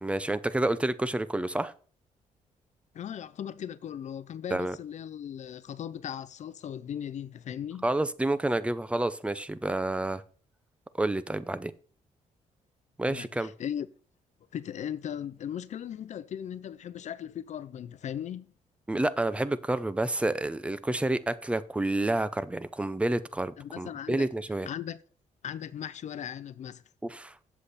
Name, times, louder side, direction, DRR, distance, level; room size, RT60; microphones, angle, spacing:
voice 1, 0.0-1.7 4.5-4.8 7.8-10.2 11.0-11.7 13.0-13.5 18.9-24.7 27.0-27.3, right 2 dB, 10° right, 0.6 m, -29 dB
voice 2, 2.9-7.9 13.1-13.9 14.5-18.5 23.6-24.3 24.6-25.0 25.4-26.8, left 9 dB, 60° left, 0.6 m, -38 dB
8.4 x 7.6 x 4.1 m
cardioid pair, 110°, 14 cm